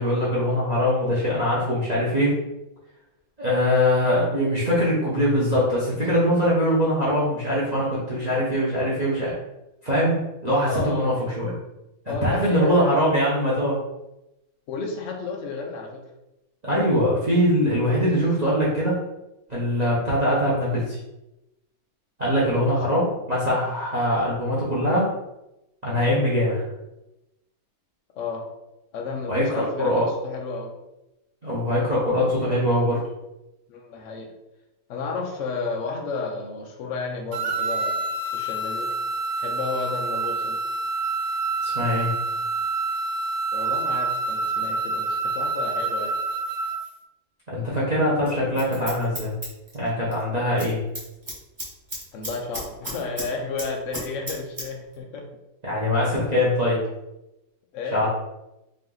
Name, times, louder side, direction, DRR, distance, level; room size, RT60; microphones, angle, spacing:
voice 1, 0.0-2.3 3.4-9.3 9.8-11.5 12.0-13.8 16.6-19.0 19.5-21.0 22.2-25.1 25.8-26.6 29.3-30.0 31.4-33.0 41.6-42.1 47.5-49.3 49.7-50.8 55.6-56.8 57.9-58.1, equal, 40° right, -7 dB, 0.6 m, -22 dB
voice 2, 10.6-11.1 12.1-13.0 14.7-16.0 22.3-22.8 28.1-28.5 28.9-30.7 33.7-34.3 34.9-38.9 39.4-40.6 43.5-46.1 52.1-55.3 57.7-58.0, left 4 dB, 75° left, 1 dB, 0.7 m, -32 dB
sound 1, 37.3-46.9, right 3 dB, 85° right, 1.6 m, -27 dB
Scissors, 48.2-50.2 50.5-50.7 51.0-53.3 53.6-54.7 54.9-55.0, equal, 15° right, 1.0 m, -34 dB
3.9 x 2.8 x 3.8 m, 0.93 s
omnidirectional pair, 2.2 m